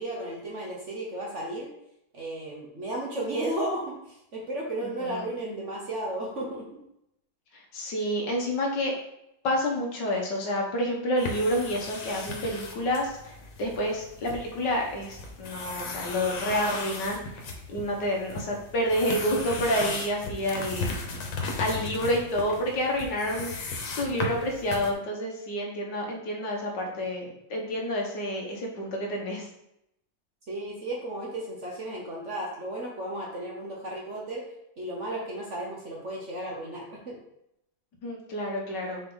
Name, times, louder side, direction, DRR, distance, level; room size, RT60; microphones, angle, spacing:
voice 1, 0.0-1.7 2.1-6.8 30.5-34.4 34.8-37.2, right 1 dB, 45° right, -2 dB, 1.2 m, -34 dB
voice 2, 4.8-5.2 7.7-8.9 9.4-17.2 17.7-20.9 21.6-23.6 24.0-27.3 27.5-29.5 38.0-39.0, equal, 65° left, 0 dB, 1.8 m, -29 dB
sound 1, 11.2-24.9, left 3 dB, 90° left, 1.8 m, -36 dB
6.4 x 4.5 x 3.9 m, 0.81 s
omnidirectional pair, 2.1 m